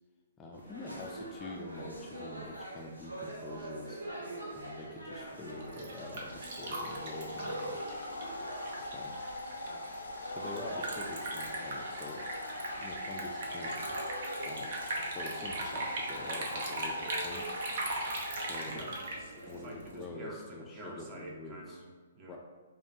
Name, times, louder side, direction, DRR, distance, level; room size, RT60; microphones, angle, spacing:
voice 1, 0.4-4.0 4.5-8.1 8.8-9.2 10.3-12.2 12.8-13.7 14.4-14.8 15.1-17.5 18.3-18.8 19.4-21.8 22.3-22.4, left 2 dB, 20° left, -1 dB, 0.4 m, -46 dB
sound 1, 0.5-19.9, right 1 dB, 90° right, 0.8 m, -44 dB
Domestic sounds home sounds, 5.5-19.2, left 2 dB, 80° left, 0.6 m, -42 dB
Liquid, 5.5-20.0, right 2 dB, 55° right, 0.7 m, -40 dB
voice 2, 18.7-22.4, right 1 dB, 30° right, -1 dB, 0.8 m, -47 dB
5.1 x 2.3 x 2.6 m, 1.5 s
figure-of-eight pair, 125°, 0 cm